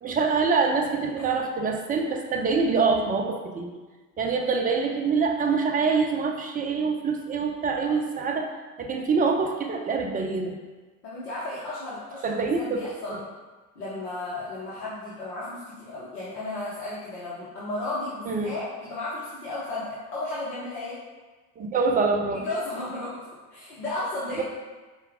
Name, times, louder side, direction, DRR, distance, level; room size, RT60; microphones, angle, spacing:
voice 1, 0.0-3.7 4.2-8.5 8.8-10.6 12.2-12.8 13.1-13.2 18.3-18.5 21.6-22.5 24.4-24.5, right 4 dB, 20° right, 2 dB, 0.4 m, -25 dB
voice 2, 11.0-13.1 13.8-21.0 22.3-23.2 23.5-24.4, left 2 dB, 75° left, -9 dB, 1.0 m, -34 dB
4.5 x 2.5 x 3.4 m, 1.3 s
figure-of-eight pair, 65°, 47 cm